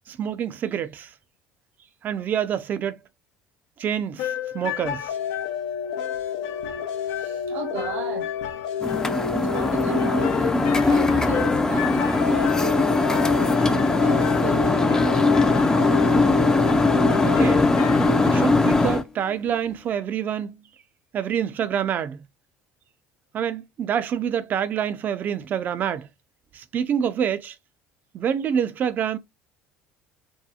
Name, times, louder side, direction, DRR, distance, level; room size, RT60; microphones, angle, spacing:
voice 1, 0.1-1.1 2.0-3.0 3.8-5.1 17.2-17.7 18.3-20.6 21.1-22.2 23.3-26.1 26.5-27.6 28.1-29.2, right 8 dB, 45° right, 0.4 m, -27 dB
sound 1, 4.2-18.4, left 8 dB, 75° left, 0.5 m, -30 dB
voice 2, 7.1-8.3 9.1-13.2 13.7-15.2, right 5 dB, 65° right, 0.9 m, -35 dB
sound 2, 8.8-19.0, left 3 dB, 15° left, 0.4 m, -20 dB
2.8 x 2.2 x 2.4 m
supercardioid pair, 85°, 4 cm